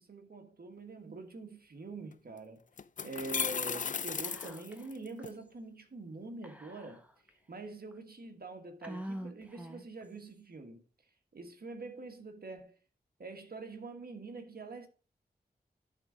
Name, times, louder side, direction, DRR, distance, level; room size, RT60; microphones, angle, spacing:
voice 1, 0.0-2.6 3.0-7.0 7.5-10.8 11.3-12.8 13.2-14.9, right 3 dB, 65° right, 1.6 m, -45 dB
sound 1, 2.1-2.2 2.8-5.3, left 6 dB, 50° left, 0.4 m, -35 dB
Whispering, 4.2-4.9 5.2-5.3 6.4-7.3 7.9-8.0 8.8-10.0, right 1 dB, 10° right, 1.4 m, -45 dB
10.5 x 3.9 x 5.1 m
cardioid pair, 45°, 17 cm